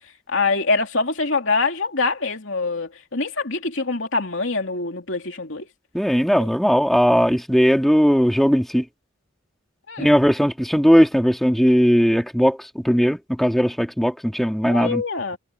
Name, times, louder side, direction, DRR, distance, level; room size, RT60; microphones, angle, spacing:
voice 1, 0.3-5.7 9.9-10.2 14.6-15.4, left 3 dB, 60° left, 3.2 m, -24 dB
voice 2, 5.9-8.8 10.0-15.0, equal, ahead, 2.4 m, -18 dB
head